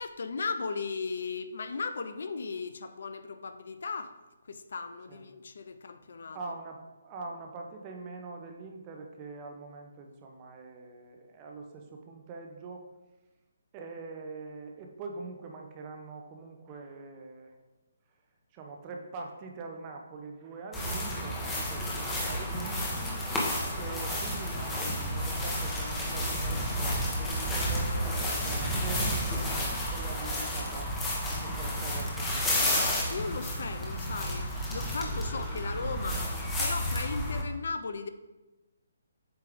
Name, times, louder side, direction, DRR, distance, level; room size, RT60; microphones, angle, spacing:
voice 1, 0.0-4.2 4.4-6.4 33.1-36.2 36.6-38.1, left 4 dB, 60° left, 10 dB, 0.4 m, -36 dB
voice 2, 6.3-12.8 13.7-17.5 18.5-23.2 23.7-30.9 31.3-32.8 35.5-35.6, right 3 dB, 25° right, 2 dB, 0.8 m, -44 dB
sound 1, 20.7-37.4, equal, 10° left, 1.1 m, -31 dB
8.0 x 3.3 x 3.6 m, 1.1 s
figure-of-eight pair, 140°, 0 cm